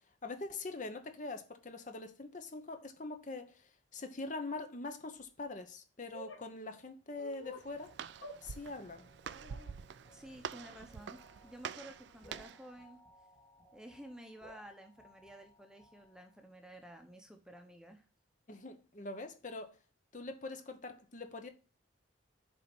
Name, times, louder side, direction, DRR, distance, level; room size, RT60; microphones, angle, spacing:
voice 1, 0.2-7.9 8.4-9.1 18.5-19.8 20.1-21.5, left 3 dB, 40° left, 0.8 m, -43 dB
sound 1, 6.1-6.4 7.2-7.7 8.2-8.4 9.3-9.7, left 1 dB, 70° left, 1.6 m, -48 dB
Walk footsteps, 7.3-12.7, right 7 dB, 65° right, 0.4 m, -47 dB
sound 2, 7.9-16.6, equal, 15° left, 1.7 m, -63 dB
voice 2, 10.1-13.0 13.7-18.1, right 1 dB, 5° right, 0.8 m, -52 dB
7.2 x 4.1 x 6.0 m
head